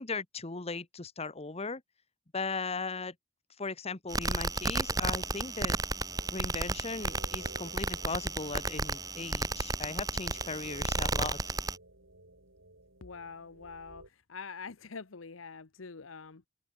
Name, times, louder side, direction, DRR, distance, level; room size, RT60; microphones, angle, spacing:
voice 1, 0.0-1.8 2.3-3.1 3.6-5.8 6.3-11.4, left 4 dB, 30° left, 1.3 m, -37 dB
sound 1, 4.1-11.8, right 3 dB, 20° right, 1.2 m, -33 dB
sound 2, 4.5-14.1, right 1 dB, 80° right, 7.8 m, -55 dB
voice 2, 13.0-16.5, left 5 dB, 80° left, 1.0 m, -45 dB
head